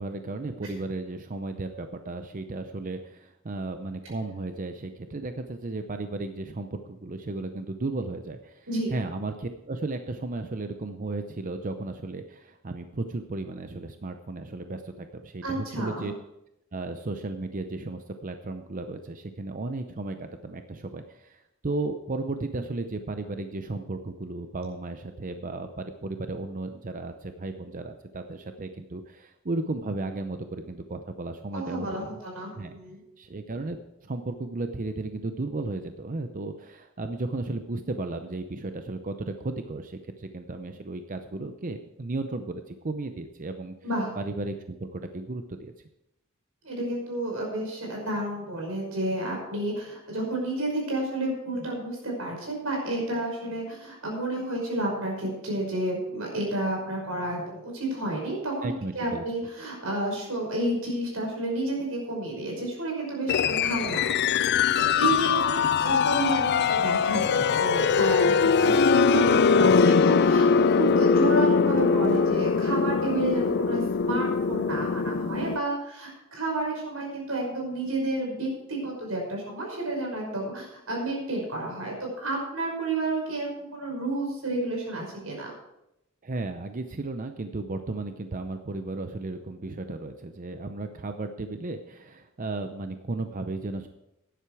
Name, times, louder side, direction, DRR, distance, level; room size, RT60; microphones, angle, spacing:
voice 1, 0.0-16.1 16.7-32.1 32.6-32.8 33.2-43.7 44.2-45.7 58.6-59.2 86.2-93.9, right 2 dB, 40° right, 7 dB, 0.6 m, -34 dB
voice 2, 15.4-16.1 31.5-33.0 43.8-44.1 46.6-85.5, right 2 dB, 90° right, 0 dB, 5.7 m, -31 dB
sound 1, 63.3-75.6, left 5 dB, 50° left, 0.4 m, -22 dB
12.5 x 10.0 x 4.8 m, 0.86 s
head